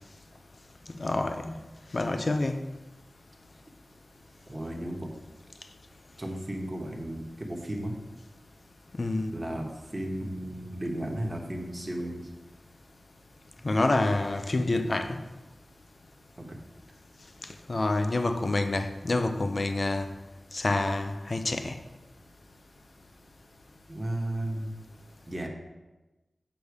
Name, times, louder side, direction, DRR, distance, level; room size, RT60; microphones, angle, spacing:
voice 1, 1.0-1.6 1.9-2.6 9.0-9.3 13.6-15.2 17.7-20.1 20.5-21.8, left 2 dB, 45° left, 7 dB, 0.6 m, -27 dB
voice 2, 4.5-5.1 6.2-8.0 9.3-12.3 16.4-16.6 23.9-24.7 25.3-25.5, right 1 dB, 20° right, 1 dB, 1.2 m, -34 dB
6.9 x 5.4 x 4.8 m, 1.1 s
wide cardioid pair, 105°, 0 cm